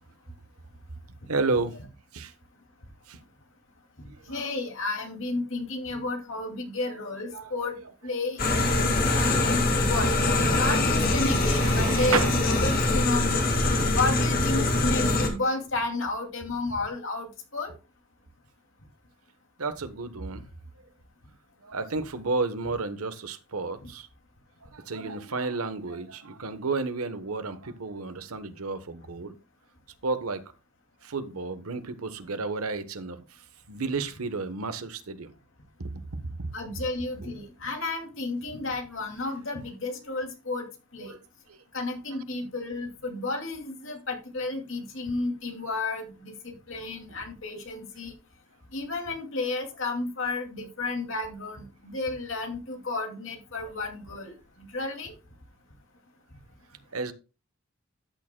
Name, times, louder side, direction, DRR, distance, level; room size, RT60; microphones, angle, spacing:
voice 1, 1.3-1.7 2.1-2.3 3.1-3.2 4.1-4.4 6.8-7.0 7.3-7.8 8.4-8.5 8.8-9.7 10.3-10.7 11.3-12.4 13.6-14.0 14.9-15.2 19.6-20.5 21.6-24.1 24.6-29.3 30.0-30.5 31.0-33.2 33.7-35.3 35.8-36.5 37.2-37.3 41.0-41.2 41.5-41.6 56.9-57.1, right 3 dB, 90° right, 1.1 m, -32 dB
voice 2, 4.3-7.8 8.0-10.1 10.5-13.5 13.9-17.7 25.0-25.1 36.5-40.7 40.9-41.1 41.7-48.1 48.7-55.1, left 3 dB, 65° left, 2.5 m, -32 dB
sound 1, 8.4-15.3, left 2 dB, 40° left, 2.1 m, -23 dB
13.0 x 8.8 x 2.2 m
head